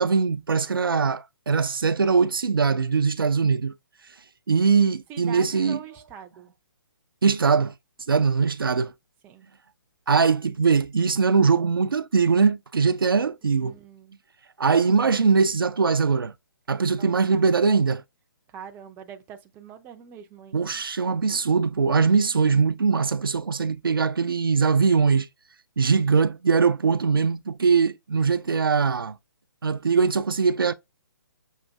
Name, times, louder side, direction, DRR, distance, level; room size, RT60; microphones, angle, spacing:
voice 1, 0.0-3.7 4.5-5.8 7.2-7.7 8.1-8.9 10.1-13.7 14.6-16.3 16.7-18.0 20.5-25.3 25.8-29.2 29.6-30.7, right 5 dB, 80° right, 0.4 m, -21 dB
voice 2, 5.1-6.5 9.2-9.5 13.4-14.1 17.0-17.5 18.5-20.6, right 8 dB, 15° right, 0.4 m, -43 dB
6.3 x 2.4 x 2.3 m
figure-of-eight pair, 130°, 12 cm